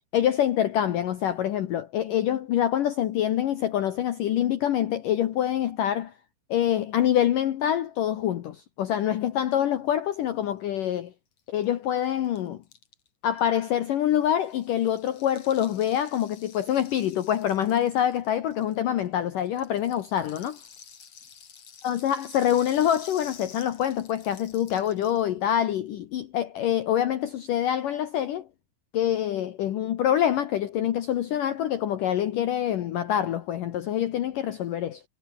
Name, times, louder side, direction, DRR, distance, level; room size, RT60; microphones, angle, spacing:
voice 1, 0.1-6.1 6.5-11.1 11.5-12.6 13.2-20.6 21.8-28.5 28.9-35.0, left 10 dB, 85° left, 1.9 m, -25 dB
Rattle (instrument), 11.4-11.5 11.6-11.7 11.9-19.1 19.4-25.2, left 7 dB, 40° left, 2.6 m, -50 dB
omnidirectional pair, 5.8 m